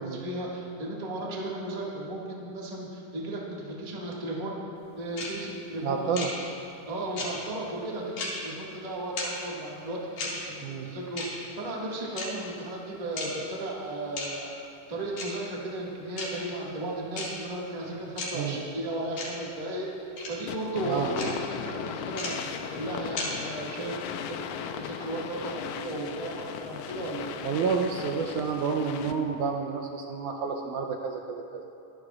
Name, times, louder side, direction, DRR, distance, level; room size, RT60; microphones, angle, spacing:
voice 1, 0.0-4.6 5.0-6.3 6.9-10.2 10.4-14.6 14.9-27.3, right 1 dB, 25° right, -4 dB, 0.9 m, -35 dB
sound 1, 5.2-5.3 6.2-6.3 7.2-7.3 8.2-8.3 9.2-9.3 10.2-10.3 11.2-11.3 12.2-12.3 13.2-13.3 14.2-14.3 15.2-15.3 16.2-16.3 17.2-17.3 18.2-18.3 19.2-19.3 20.2-20.3 21.2-21.3 22.2-22.3 23.2-23.3, left 3 dB, 60° left, 3.4 m, -33 dB
voice 2, 5.8-6.3 10.6-10.9 18.3-18.6 20.8-21.4 27.4-31.6, right 5 dB, 80° right, 3 dB, 1.9 m, -30 dB
sound 2, 20.5-29.4, left 8 dB, 85° left, 1.8 m, -37 dB
24.0 x 12.0 x 2.4 m, 2.8 s
omnidirectional pair, 4.0 m